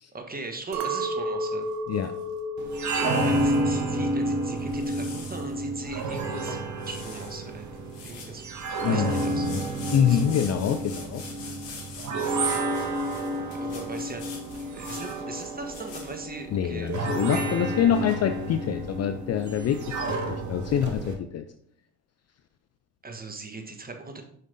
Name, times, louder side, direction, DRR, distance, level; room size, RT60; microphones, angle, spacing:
voice 1, 0.1-1.7 3.1-6.6 6.9-7.7 8.0-8.5 8.9-9.7 10.1-10.4 12.3-12.5 13.5-14.3 14.7-16.9 23.0-24.2, right 3 dB, 20° right, 5 dB, 1.3 m, -39 dB
Chink clink, 0.7-5.1 5.5-6.1, right 1 dB, 75° right, 1.0 m, -34 dB
sound 1, 1.6-2.4 2.8-3.6 4.3-5.5 6.0-6.1 6.3-6.5 6.8-7.4 7.8-16.1, left 5 dB, 65° left, 2.1 m, -45 dB
sound 2, 2.6-21.1, right 2 dB, 40° right, 1.4 m, -30 dB
voice 2, 8.8-9.6 9.9-11.2 16.5-21.4, left 9 dB, 35° left, 9 dB, 0.5 m, -26 dB
6.3 x 5.3 x 3.9 m, 0.67 s
hypercardioid pair, 65°, 47 cm